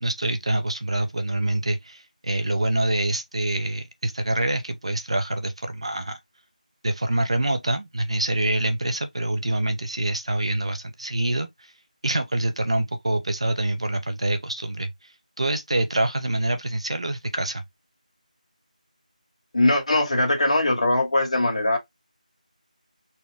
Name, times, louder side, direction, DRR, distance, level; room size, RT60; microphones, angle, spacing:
voice 1, 0.0-6.2 6.8-11.7 12.0-15.1 15.4-17.6, right 1 dB, 45° right, 0.5 m, -26 dB
voice 2, 19.5-21.8, left 2 dB, 45° left, 1.9 m, -21 dB
4.2 x 2.3 x 3.4 m
figure-of-eight pair, 180°, 4 cm